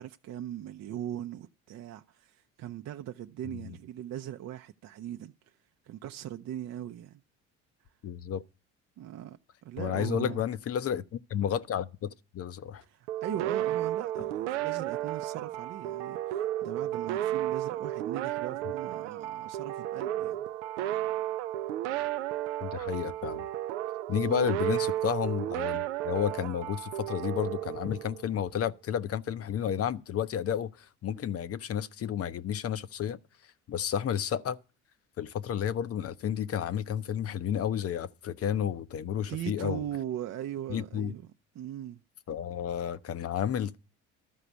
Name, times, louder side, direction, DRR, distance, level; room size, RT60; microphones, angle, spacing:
voice 1, 0.0-5.5 5.8-7.2 9.0-10.4 12.8-20.4 24.2-24.5 39.3-41.2 41.5-42.0, right 11 dB, 50° right, 0.6 m, -39 dB
voice 2, 8.0-8.4 9.8-12.8 22.6-23.5 24.1-33.2 33.7-34.6 35.2-39.9 40.7-41.1 42.3-43.8, left 9 dB, 45° left, 0.7 m, -31 dB
sound 1, 13.1-28.4, right 13 dB, 90° right, 0.5 m, -33 dB
13.0 x 5.0 x 8.0 m
hypercardioid pair, 65°, 35 cm